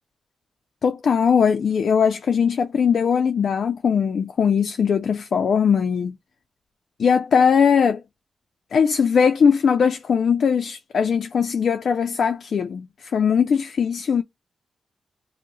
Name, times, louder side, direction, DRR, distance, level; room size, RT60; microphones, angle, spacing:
voice 1, 0.8-6.1 7.0-8.0 8.7-14.2, left 6 dB, 70° left, 0.3 m, -20 dB
2.6 x 2.0 x 3.8 m
cardioid pair, 90°, 0 cm